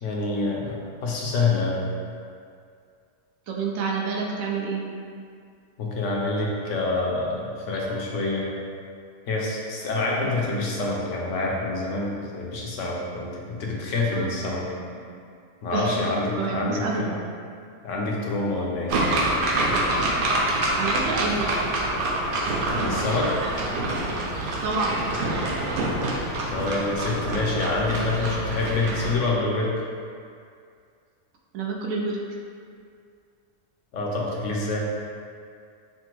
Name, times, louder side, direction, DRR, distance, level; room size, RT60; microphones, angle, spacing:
voice 1, 0.0-1.8 5.8-8.5 9.3-14.6 15.6-17.1 17.8-18.9 22.7-23.3 26.5-29.7 33.9-34.8, left 3 dB, 70° left, -3 dB, 1.0 m, -27 dB
voice 2, 3.5-4.8 13.7-13.8 14.1-14.4 15.0-15.1 15.7-17.2 17.5-17.6 20.7-21.5 24.6-25.0 31.5-32.2, right 4 dB, 90° right, -1 dB, 1.1 m, -29 dB
sound 1, 18.9-29.2, right 1 dB, 60° right, 0.6 m, -26 dB
5.9 x 2.2 x 3.0 m, 2.3 s
omnidirectional pair, 1.4 m